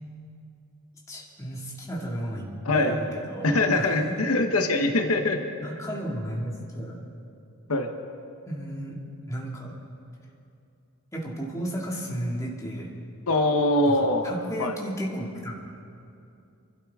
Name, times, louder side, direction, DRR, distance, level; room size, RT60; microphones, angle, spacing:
voice 1, 1.1-4.2 5.6-7.0 8.5-9.0 9.3-9.7 11.1-12.9 13.9-15.6, right 1 dB, 15° left, -4 dB, 2.1 m, -33 dB
voice 2, 2.6-3.0 3.4-5.4 7.7-7.9 13.3-14.3 14.6-14.8, left 2 dB, 80° left, 5 dB, 0.9 m, -23 dB
26.5 x 12.5 x 3.6 m, 2.6 s
head